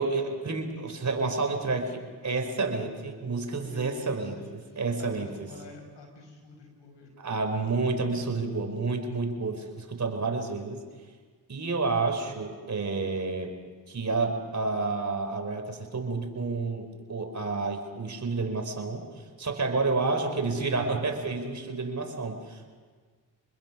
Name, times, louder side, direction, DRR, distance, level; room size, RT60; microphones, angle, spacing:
voice 1, 0.0-4.4 4.8-5.5 7.2-10.8 11.5-13.5 13.9-19.1 19.4-22.7, right 3 dB, 40° right, 4 dB, 4.3 m, -30 dB
voice 2, 3.7-7.1, left 3 dB, 80° left, 3 dB, 5.5 m, -48 dB
26.0 x 21.0 x 6.1 m, 1.5 s
cardioid pair, 60°, 42 cm